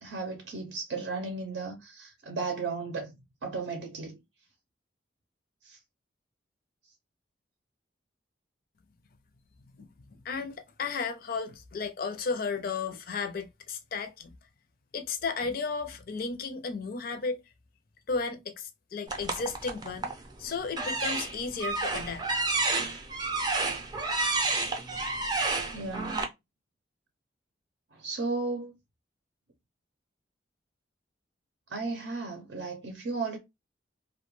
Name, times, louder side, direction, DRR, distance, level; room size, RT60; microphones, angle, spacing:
voice 1, 0.0-3.1 3.4-4.2 5.6-5.8 25.7-26.2 27.9-28.7 31.7-33.4, right 4 dB, 75° right, 0.6 m, -35 dB
voice 2, 10.2-14.4 14.9-17.4 18.1-20.1 20.4-22.3, left 4 dB, 55° left, 0.4 m, -34 dB
sound 1, 19.1-20.2 20.7-26.2, right 3 dB, 25° right, 0.5 m, -30 dB
2.2 x 2.1 x 3.0 m
head